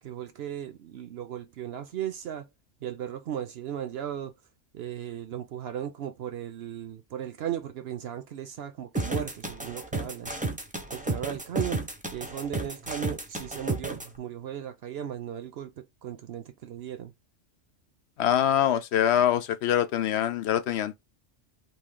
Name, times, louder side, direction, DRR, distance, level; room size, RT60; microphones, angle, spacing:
voice 1, 0.0-2.5 2.8-4.4 4.7-10.3 10.9-17.1, right 10 dB, 65° right, 0.8 m, -36 dB
sound 1, 8.9-14.1, right 2 dB, 10° right, 0.5 m, -32 dB
voice 2, 18.2-21.0, left 10 dB, 70° left, 0.8 m, -24 dB
3.1 x 2.7 x 3.6 m
omnidirectional pair, 1.2 m